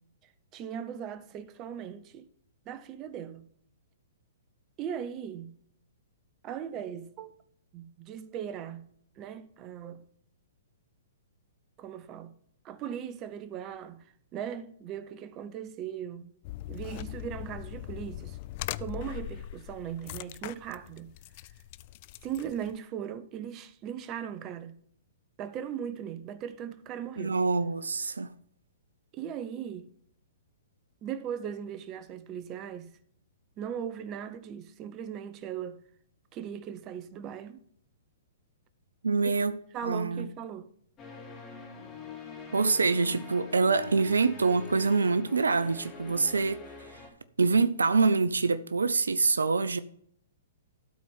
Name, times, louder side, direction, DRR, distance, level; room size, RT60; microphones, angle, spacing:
voice 1, 0.5-2.3 2.7-3.5 4.8-5.6 6.4-7.3 7.7-8.9 9.2-10.1 11.8-12.4 12.6-14.1 14.3-16.3 16.7-18.4 18.8-21.1 22.2-24.8 25.4-27.4 29.1-29.9 31.0-33.0 33.6-35.8 36.3-37.6 39.2-39.4 39.7-40.7 46.1-46.2, right 9 dB, 30° right, 0.8 m, -38 dB
sound 1, 16.4-22.8, left 16 dB, 45° left, 0.3 m, -41 dB
voice 2, 27.2-28.3 39.0-40.3 42.5-46.6 47.4-49.8, right 4 dB, 85° right, 0.5 m, -25 dB
sound 2, 41.0-47.1, left 5 dB, 25° left, 2.3 m, -45 dB
12.5 x 4.4 x 5.4 m
hypercardioid pair, 125°, 0 cm